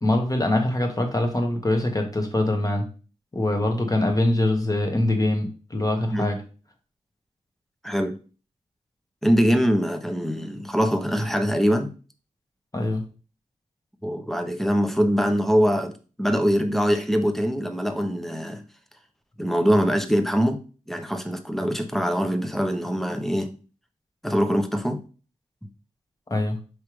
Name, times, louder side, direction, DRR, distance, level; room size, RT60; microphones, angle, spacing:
voice 1, 0.0-2.8 3.3-6.4 12.7-13.0 26.3-26.6, left 1 dB, 25° left, 3 dB, 1.3 m, -23 dB
voice 2, 7.8-8.2 9.2-11.9 14.0-15.9 16.2-18.6 19.4-20.6 20.9-23.6 24.2-25.0, equal, ahead, 7 dB, 0.7 m, -23 dB
4.8 x 3.3 x 3.1 m, 0.36 s
cardioid pair, 55°, 13 cm